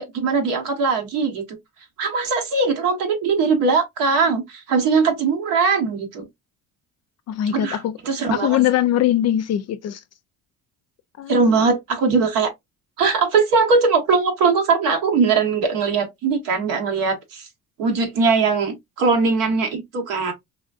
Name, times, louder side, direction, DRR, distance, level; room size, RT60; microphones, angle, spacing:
voice 1, 0.0-1.4 2.0-6.3 7.5-8.6 11.3-12.5 13.0-17.5 17.8-20.3, right 4 dB, 90° right, 1.3 m, -20 dB
voice 2, 7.3-8.0 8.3-10.0 11.2-11.6, left 12 dB, 50° left, 0.4 m, -21 dB
4.0 x 2.6 x 2.3 m
cardioid pair, 105°, 32 cm